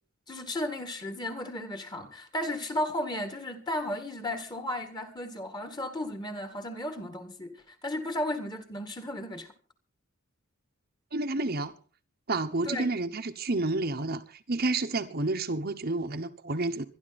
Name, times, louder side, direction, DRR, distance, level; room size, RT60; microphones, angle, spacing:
voice 1, 0.3-9.5 12.6-13.0, left 1 dB, 20° left, 1.9 m, -34 dB
voice 2, 11.1-11.7 12.3-16.9, right 2 dB, 45° right, 1.1 m, -30 dB
24.0 x 11.0 x 4.2 m
head